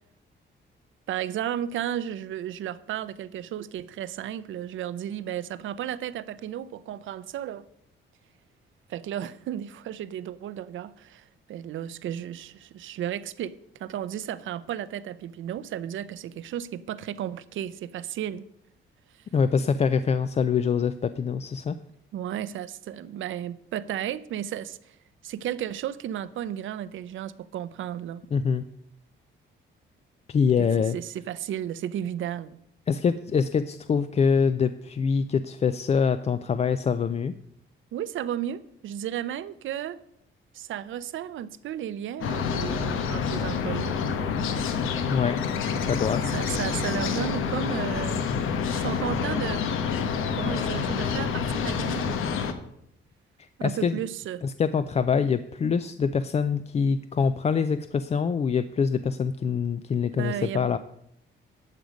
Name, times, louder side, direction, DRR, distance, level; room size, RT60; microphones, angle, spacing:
voice 1, 1.1-7.6 8.9-13.5 13.8-18.5 22.1-25.0 25.2-28.2 30.6-30.7 30.9-32.6 37.9-40.0 40.5-43.9 46.3-48.2 48.7-49.7 50.3-52.3 53.6-54.4 60.2-60.8, right 10 dB, 75° right, 0.6 m, -33 dB
voice 2, 19.3-21.8 28.3-28.6 30.3-31.0 32.9-37.3 45.1-45.4 45.8-46.3 53.4-54.0 54.4-60.8, left 6 dB, 35° left, 0.4 m, -25 dB
sound 1, 42.2-52.5, left 6 dB, 90° left, 1.1 m, -28 dB
12.0 x 7.8 x 5.1 m
cardioid pair, 125°, 20 cm